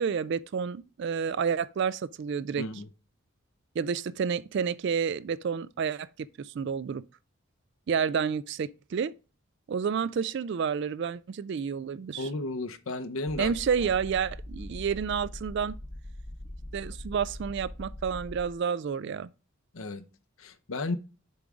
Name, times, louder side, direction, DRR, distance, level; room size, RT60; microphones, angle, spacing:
voice 1, 0.0-2.6 3.8-7.0 7.9-9.1 9.7-12.3 13.4-15.8 16.7-19.3, right 6 dB, 55° right, 0.3 m, -30 dB
voice 2, 2.6-2.9 12.2-13.5 19.7-20.0 20.4-21.0, left 2 dB, 70° left, 0.7 m, -33 dB
sound 1, 13.3-18.6, left 1 dB, 25° left, 0.9 m, -42 dB
6.9 x 3.8 x 4.7 m
head